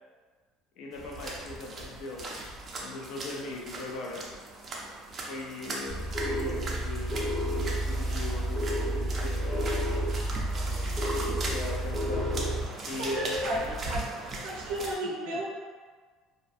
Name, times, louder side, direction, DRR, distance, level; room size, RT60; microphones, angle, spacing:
voice 1, 0.8-4.2 5.2-9.9 10.5-13.7 15.3-15.4, left 2 dB, 60° left, -2 dB, 0.4 m, -39 dB
sound 1, 0.9-14.9, right 2 dB, 30° right, 0.4 m, -39 dB
sound 2, 5.9-12.7, right 1 dB, 15° left, 1.0 m, -30 dB
voice 2, 13.0-14.0 14.4-15.5, right 1 dB, 75° right, -4 dB, 0.6 m, -33 dB
2.5 x 2.1 x 2.5 m, 1.5 s
cardioid pair, 125°, 0 cm